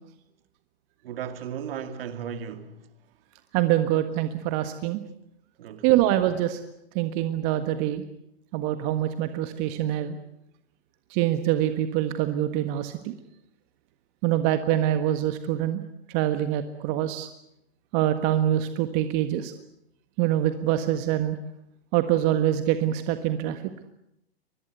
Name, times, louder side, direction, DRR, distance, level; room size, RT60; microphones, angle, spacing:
voice 1, 1.0-2.8 5.6-5.9, right 8 dB, 60° right, 2.4 m, -35 dB
voice 2, 3.5-5.0 5.8-6.6 6.9-8.0 8.5-10.2 11.1-13.1 14.2-15.8 16.1-17.3 17.9-19.5 20.2-21.4 21.9-23.6, right 12 dB, 40° right, 1.6 m, -25 dB
24.5 x 21.0 x 8.2 m
hypercardioid pair, 125°, 32 cm